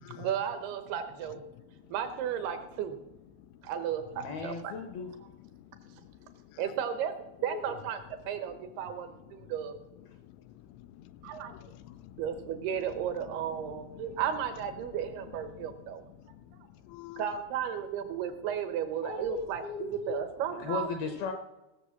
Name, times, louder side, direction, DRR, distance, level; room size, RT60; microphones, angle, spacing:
voice 1, 0.2-1.4 1.9-2.9 3.6-4.7 6.6-7.1 7.4-9.8 11.2-11.5 12.2-16.0 17.2-20.9, right 9 dB, 75° right, 2.4 m, -34 dB
voice 2, 1.5-1.9 3.3-3.6 5.2-6.8 9.3-9.6 10.1-12.5 13.6-14.2 15.5-17.3, left 13 dB, 85° left, 3.1 m, -51 dB
voice 3, 4.2-5.1 7.5-7.8 19.0-20.2 20.5-21.3, left 5 dB, 70° left, 2.3 m, -37 dB
19.0 x 6.8 x 7.2 m
omnidirectional pair, 5.5 m